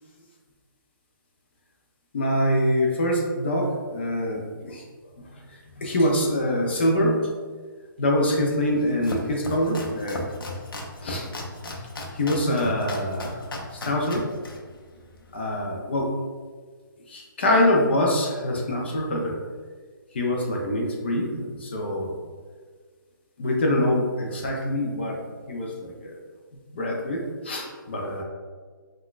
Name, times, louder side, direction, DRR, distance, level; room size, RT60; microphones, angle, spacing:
voice 1, 2.1-7.3 8.0-10.2 11.0-11.2 12.1-14.3 15.3-16.2 17.1-19.4 20.1-22.1 23.4-26.2 26.7-28.2, left 1 dB, 30° left, -1 dB, 0.4 m, -25 dB
Domestic sounds home sounds, 8.7-15.6, left 1 dB, 75° left, 0.6 m, -37 dB
3.8 x 2.2 x 2.3 m, 1.5 s
hypercardioid pair, 170°, 12 cm